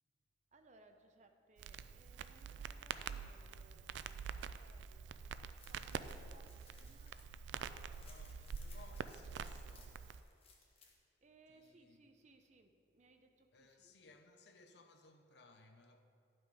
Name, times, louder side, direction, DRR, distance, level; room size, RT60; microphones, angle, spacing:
voice 1, 0.5-5.2 5.7-7.3 11.2-13.9, right 2 dB, 40° right, 0.6 m, -67 dB
Crackle, 1.6-10.2, right 6 dB, 90° right, 0.3 m, -46 dB
sound 1, 5.6-11.0, left 4 dB, 35° left, 1.1 m, -65 dB
voice 2, 8.0-10.1 11.5-12.1 13.5-16.0, left 3 dB, 70° left, 0.7 m, -63 dB
10.0 x 6.1 x 4.9 m
head